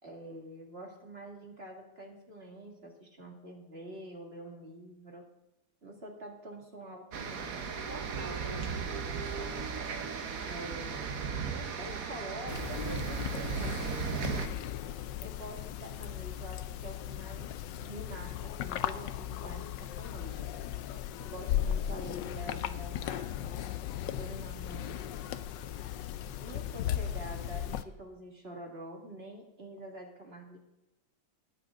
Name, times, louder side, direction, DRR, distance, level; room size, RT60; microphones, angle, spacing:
voice 1, 0.0-5.2 5.8-9.6 10.4-11.0 11.5-13.8 14.2-14.7 15.2-20.5 21.2-23.7 24.0-25.1 26.4-30.6, right 1 dB, 35° right, 0 dB, 2.2 m, -46 dB
sound 1, 7.1-14.5, right 6 dB, 55° right, 1.3 m, -36 dB
sound 2, 12.5-27.8, left 11 dB, 75° left, 1.2 m, -37 dB
19.5 x 7.5 x 3.7 m, 0.95 s
omnidirectional pair, 2.0 m